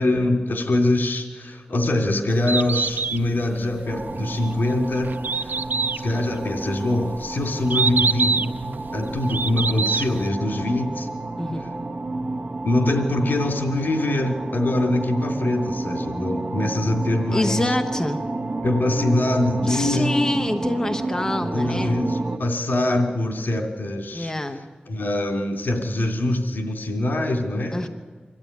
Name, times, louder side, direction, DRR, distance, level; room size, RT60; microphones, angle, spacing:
voice 1, 0.0-5.6 5.9-8.5 8.9-11.1 12.6-17.7 18.6-20.1 21.5-24.3 24.9-27.9, left 1 dB, 80° left, 3 dB, 2.7 m, -23 dB
Bird, 2.3-10.3, right 4 dB, 70° right, 0.6 m, -26 dB
sound 1, 3.9-22.4, right 2 dB, 55° right, 1.3 m, -31 dB
voice 2, 17.3-18.2 19.6-22.0 24.1-24.6 27.7-27.9, left 1 dB, 15° left, 6 dB, 1.1 m, -26 dB
24.5 x 13.5 x 9.4 m, 1.4 s
wide cardioid pair, 100°, 3 cm